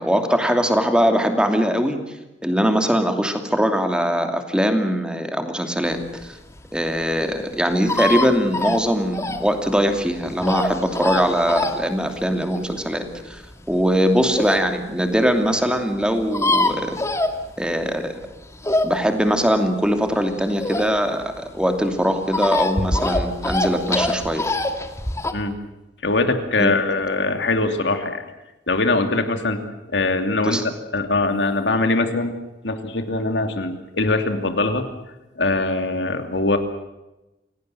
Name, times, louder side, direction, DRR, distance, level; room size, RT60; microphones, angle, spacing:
voice 1, 0.0-2.0 2.4-6.4 6.7-13.4 13.7-17.0 17.6-18.1 18.8-24.4 26.6-26.7 30.4-30.6, equal, 5° right, 5 dB, 2.7 m, -21 dB
sound 1, 6.1-14.7 15.2-15.3 15.5-15.6 15.7-15.8 16.0-17.9 18.2-21.2 21.6-25.3, left 2 dB, 15° left, 2.1 m, -24 dB
voice 2, 26.0-28.2 28.7-29.6 29.9-30.6 30.9-32.3 32.6-34.9 35.4-36.6, left 2 dB, 75° left, 6 dB, 2.8 m, -22 dB
27.5 x 18.0 x 7.8 m, 1.0 s
head